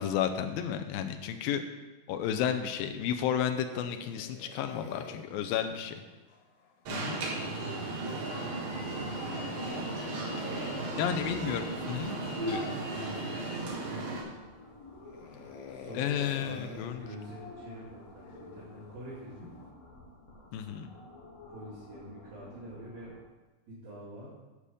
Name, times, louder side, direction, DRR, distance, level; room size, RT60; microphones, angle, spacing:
voice 1, 0.0-1.6 2.1-6.0 6.9-7.2 11.0-12.7 16.0-17.0 20.5-20.9, left 9 dB, 85° left, 7 dB, 2.5 m, -32 dB
sound 1, 3.5-6.8 9.1-11.2 12.3-12.7 13.3-13.4 14.1-14.6 15.1-18.5 19.4-19.7, left 5 dB, 70° left, 2.2 m, -48 dB
Alarm, 6.9-14.2, right 2 dB, 50° right, 2.3 m, -35 dB
voice 2, 7.1-9.0 10.9-11.6 13.0-14.2 15.7-19.5 21.5-23.1 23.7-24.3, right 1 dB, 80° right, -10 dB, 3.9 m, -47 dB
sound 2, 8.4-23.2, left 2 dB, 55° left, 2.9 m, -51 dB
9.8 x 5.0 x 6.8 m, 1.2 s
omnidirectional pair, 4.2 m